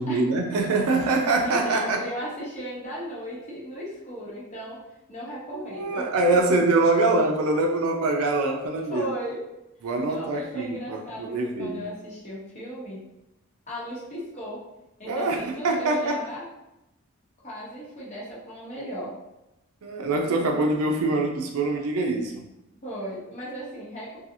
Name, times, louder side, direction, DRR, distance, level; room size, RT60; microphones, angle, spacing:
voice 1, 0.0-2.0 5.5-9.1 9.8-11.8 15.0-16.2 19.8-22.4, right 2 dB, 85° right, 2 dB, 0.5 m, -24 dB
voice 2, 1.4-4.8 5.1-6.4 8.9-9.4 10.1-13.0 13.7-14.6 15.0-16.4 17.4-19.1 22.8-24.2, equal, 35° left, -7 dB, 1.0 m, -36 dB
2.7 x 2.3 x 2.6 m, 0.91 s
head